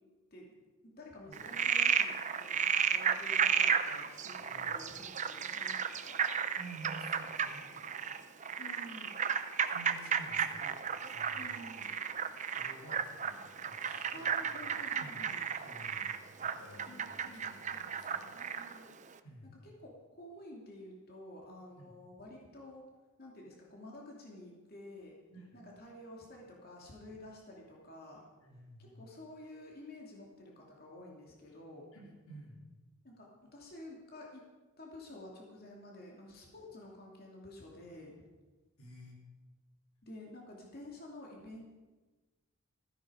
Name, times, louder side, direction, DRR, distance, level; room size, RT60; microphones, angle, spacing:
voice 1, 0.8-6.1 8.6-9.1 11.4-12.0 14.1-15.4 16.9-17.8 18.3-18.9 19.6-22.9 23.2-25.2 25.5-28.2 28.8-31.8 33.0-34.5 34.8-38.2 40.0-41.7, left 1 dB, 45° left, -2 dB, 2.7 m, -51 dB
Frog, 1.3-18.8, right 7 dB, 35° right, 0.6 m, -33 dB
voice 2, 6.6-7.8 9.7-11.6 12.5-15.3 15.6-16.1 16.4-18.4 19.2-19.5 21.8-22.0 25.3-25.6 28.4-29.0 31.9-32.7 38.8-39.2, right 2 dB, 90° left, -1 dB, 3.6 m, -52 dB
15.5 x 14.5 x 5.0 m, 1.2 s
head